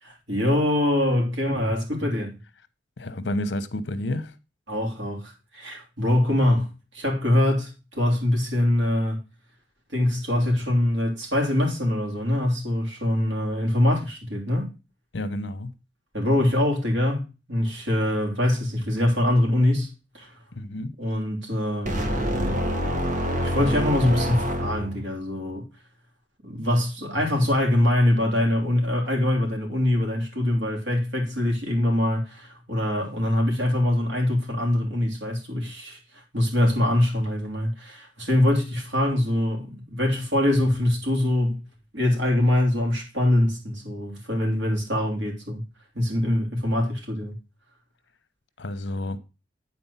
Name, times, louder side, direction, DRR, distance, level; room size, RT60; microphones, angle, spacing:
voice 1, 0.0-2.4 4.7-9.2 9.9-14.7 16.1-17.2 17.5-20.3 21.0-22.6 23.4-25.7 26.4-41.6 41.9-45.6 45.9-47.4, left 1 dB, 75° right, 3.3 m, -24 dB
voice 2, 3.0-4.3 15.1-15.7 20.5-21.0 48.6-49.2, left 1 dB, 70° left, 0.9 m, -30 dB
sound 1, 21.9-25.1, equal, 45° right, 1.5 m, -26 dB
9.5 x 4.3 x 5.6 m
head